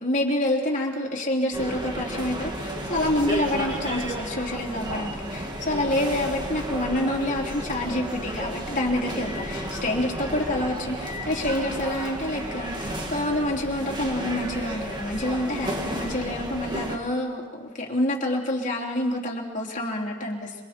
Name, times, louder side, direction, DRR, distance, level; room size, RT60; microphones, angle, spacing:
voice 1, 0.0-20.6, left 1 dB, 35° left, -2 dB, 3.6 m, -27 dB
sound 1, 1.5-17.0, right 1 dB, 20° right, 2.3 m, -32 dB
27.5 x 25.5 x 4.5 m, 1.5 s
head